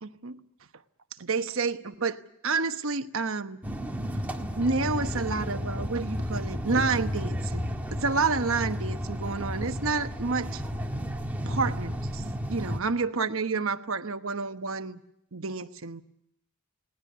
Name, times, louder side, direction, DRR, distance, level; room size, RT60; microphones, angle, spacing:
voice 1, 0.0-0.4 1.2-2.2 2.4-3.6 4.6-10.6 11.4-12.2 12.5-15.0 15.3-16.0, right 4 dB, 65° right, 9 dB, 1.1 m, -29 dB
sound 1, 3.6-12.8, equal, 5° right, 1.6 m, -32 dB
20.5 x 18.5 x 9.7 m, 0.79 s
head